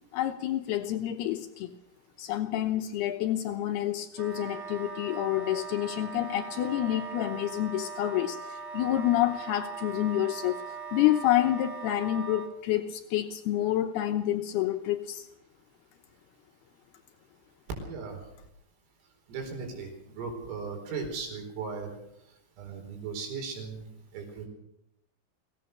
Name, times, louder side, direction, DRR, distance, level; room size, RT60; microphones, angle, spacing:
voice 1, 0.1-1.7 2.2-10.6 10.9-15.3, left 13 dB, 85° left, 6 dB, 2.2 m, -28 dB
Wind instrument woodwind instrument, 4.1-12.5, right 5 dB, 45° right, 3.2 m, -40 dB
voice 2, 17.8-18.2 19.3-22.0 22.6-23.8 24.1-24.5, right 5 dB, 75° right, 3 dB, 7.2 m, -37 dB
24.0 x 17.5 x 6.7 m, 0.79 s
omnidirectional pair, 6.0 m